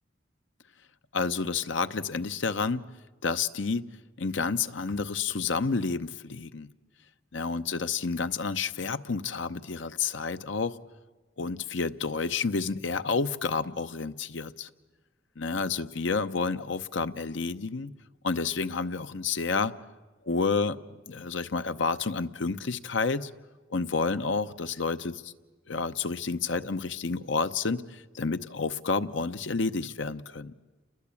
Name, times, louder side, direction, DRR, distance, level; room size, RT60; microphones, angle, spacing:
voice 1, 1.1-2.8 3.2-3.8 4.2-6.7 7.3-10.8 11.4-14.7 15.4-17.9 18.2-19.7 20.3-23.3 23.7-25.3 25.7-30.5, left 4 dB, 75° left, 11 dB, 0.9 m, -30 dB
30.0 x 21.0 x 8.5 m, 1.2 s
head